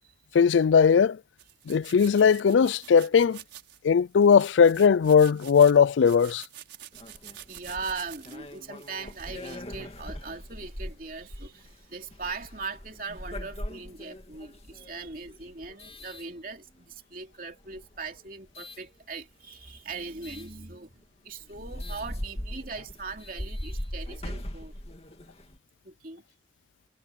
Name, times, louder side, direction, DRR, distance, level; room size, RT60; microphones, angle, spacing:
voice 1, 0.3-1.2 1.7-3.4 3.8-6.4, left 6 dB, 90° left, 0.4 m, -19 dB
sound 1, 1.4-9.8, right 12 dB, 85° right, 6.3 m, -48 dB
sound 2, 6.9-17.0 17.6-18.8 20.2-20.5 21.0-21.1 21.4-25.6, left 1 dB, 35° left, 2.6 m, -40 dB
voice 2, 7.5-24.8 25.8-26.2, right 4 dB, 50° right, 3.0 m, -40 dB
head